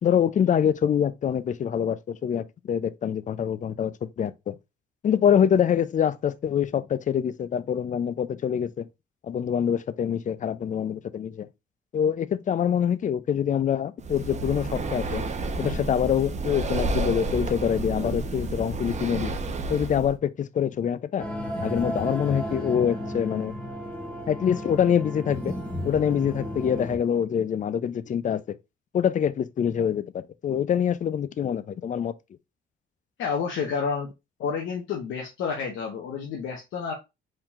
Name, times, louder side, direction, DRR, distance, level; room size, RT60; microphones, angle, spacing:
voice 1, 0.0-4.5 5.0-8.9 9.2-11.5 11.9-15.2 15.6-19.3 19.7-21.3 21.6-23.5 24.3-25.5 25.8-28.6 28.9-32.1, left 8 dB, 40° left, 0.5 m, -25 dB
Breathing, 14.0-20.1, right 2 dB, 35° right, 0.8 m, -30 dB
sound 1, 21.2-27.0, equal, 5° left, 2.0 m, -33 dB
voice 2, 33.2-34.1 34.4-36.9, left 6 dB, 80° left, 1.1 m, -29 dB
4.5 x 3.8 x 2.4 m
cardioid pair, 90°, 20 cm